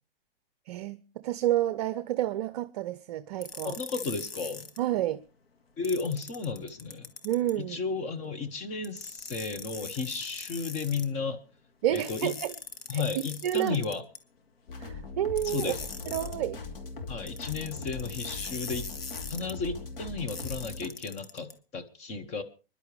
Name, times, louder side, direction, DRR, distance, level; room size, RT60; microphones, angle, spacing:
voice 1, 0.7-3.7 4.8-5.2 7.2-7.8 11.8-12.5 12.9-13.0 13.4-13.8 14.8-15.7 16.1-16.6, right 12 dB, 45° right, 0.6 m, -29 dB
sound 1, 3.4-4.8 5.8-7.5 8.8-11.1 12.0-14.2 15.4-16.4 17.3-19.5 20.3-21.5, left 5 dB, 80° left, 2.0 m, -41 dB
voice 2, 3.6-4.7 5.8-7.1 7.6-11.4 11.9-12.3 12.9-14.0 15.4-15.8 17.1-18.9 19.3-22.4, left 4 dB, 25° left, 1.1 m, -33 dB
sound 2, 14.7-20.9, left 3 dB, 65° left, 2.8 m, -40 dB
25.5 x 11.0 x 3.3 m
hypercardioid pair, 130°, 30 cm